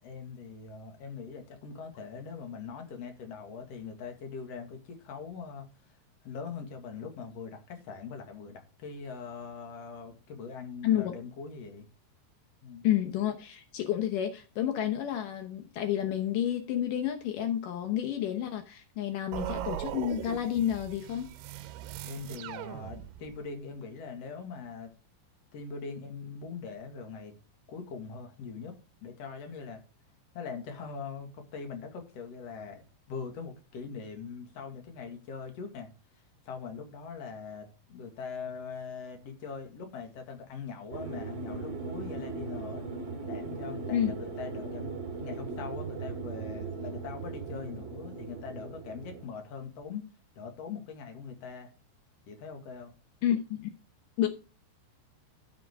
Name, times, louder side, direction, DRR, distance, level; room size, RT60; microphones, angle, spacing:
voice 1, 0.0-6.0 6.2-11.9 12.6-12.9 22.0-24.9 25.5-27.4 27.7-28.7 29.0-29.8 30.3-35.9 36.4-42.8 43.2-45.0 45.2-50.1 50.4-51.7 52.3-52.9, left 5 dB, 50° left, 2.1 m, -42 dB
voice 2, 12.8-21.3 43.9-44.1 53.2-53.7 54.2-54.3, left 11 dB, 80° left, 1.9 m, -30 dB
sound 1, 19.3-23.4, right 12 dB, 75° right, 2.5 m, -39 dB
sound 2, 40.9-49.3, right 4 dB, 40° right, 1.7 m, -38 dB
13.0 x 7.7 x 3.6 m
omnidirectional pair, 5.2 m